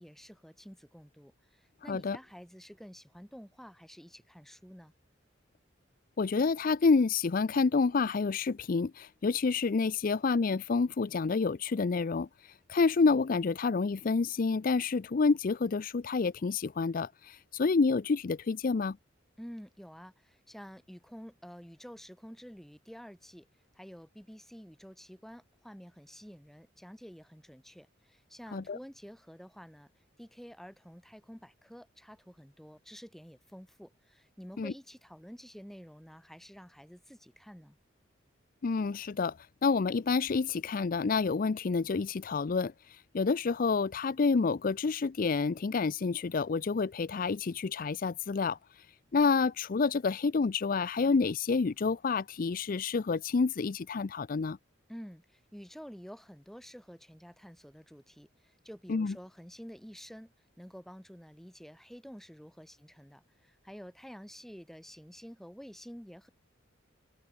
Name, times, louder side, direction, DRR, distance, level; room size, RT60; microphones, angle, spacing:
voice 1, 0.0-4.9 19.4-23.5 23.7-29.9 30.2-37.8 54.9-66.3, equal, ahead, 2.2 m, -50 dB
voice 2, 6.2-19.0 28.5-28.8 34.6-34.7 38.6-48.6 49.1-54.6 58.9-59.1, left 4 dB, 45° left, 0.4 m, -28 dB
head